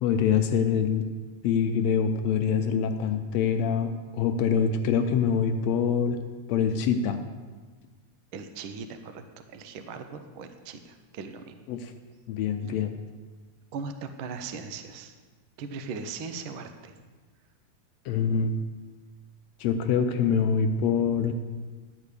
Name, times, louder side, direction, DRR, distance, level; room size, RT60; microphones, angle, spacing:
voice 1, 0.0-1.1 1.4-6.2 6.5-7.2 11.7-11.9 12.3-12.9 18.0-18.6 19.6-21.3, left 6 dB, 75° left, 7 dB, 1.7 m, -25 dB
voice 2, 8.3-9.2 9.5-11.6 12.7-12.8 13.7-15.2 15.6-16.9, right 5 dB, 90° right, 7 dB, 1.1 m, -39 dB
12.0 x 5.0 x 8.2 m, 1.4 s
omnidirectional pair, 3.4 m